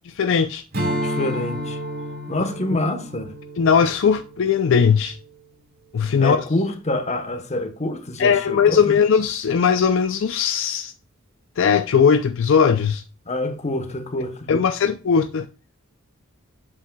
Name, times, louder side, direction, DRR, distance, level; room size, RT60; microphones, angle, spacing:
voice 1, 0.1-0.6 3.6-5.2 5.9-6.4 8.2-10.9 11.6-13.0 14.5-15.5, left 6 dB, 65° left, 0.4 m, -19 dB
Strum, 0.7-5.4, equal, 50° right, 1.4 m, -31 dB
voice 2, 0.9-1.8 2.3-3.3 6.2-8.9 13.2-14.7, left 1 dB, 35° left, 1.0 m, -26 dB
8.4 x 7.5 x 2.3 m
head